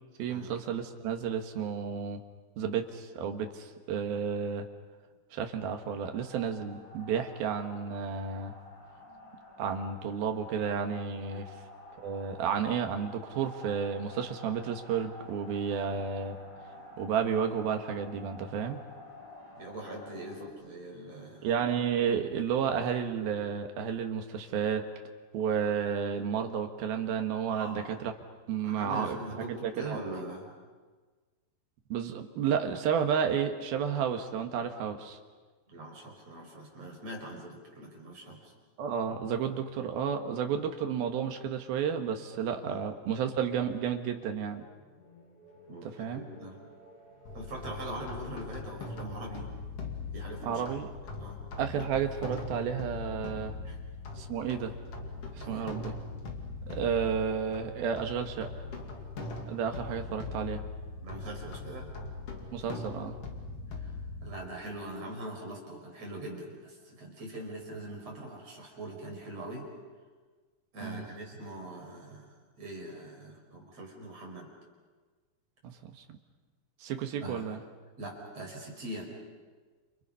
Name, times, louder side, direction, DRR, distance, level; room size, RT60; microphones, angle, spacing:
voice 1, 0.2-2.2 2.6-4.7 5.3-8.5 9.6-11.5 12.0-16.4 17.0-18.8 21.4-24.9 25.3-28.1 28.5-30.0 31.9-35.2 38.8-44.6 45.8-46.2 50.4-50.9 51.6-53.6 54.2-54.7 55.3-55.9 56.7-58.5 59.5-60.6 62.5-63.2 70.8-71.1 75.6-76.0 76.8-77.6, right 7 dB, 65° right, 5 dB, 3.2 m, -32 dB
sound 1, 5.5-20.5, left 1 dB, 25° left, 4.7 m, -50 dB
voice 2, 19.6-21.5 27.5-27.9 28.6-30.6 35.7-38.5 42.6-42.8 45.7-46.6 47.3-49.5 50.1-50.7 51.2-51.5 53.6-53.9 55.3-55.7 60.1-60.2 61.0-61.9 63.8-63.9 64.2-69.7 70.7-74.5 77.2-77.4 78.0-79.1, right 1 dB, 35° right, 0 dB, 6.0 m, -42 dB
sound 2, 42.3-48.6, right 1 dB, 70° left, 8.0 m, -57 dB
sound 3, 47.3-64.5, left 3 dB, 40° left, 2.9 m, -41 dB
29.5 x 28.5 x 5.7 m, 1.4 s
omnidirectional pair, 5.0 m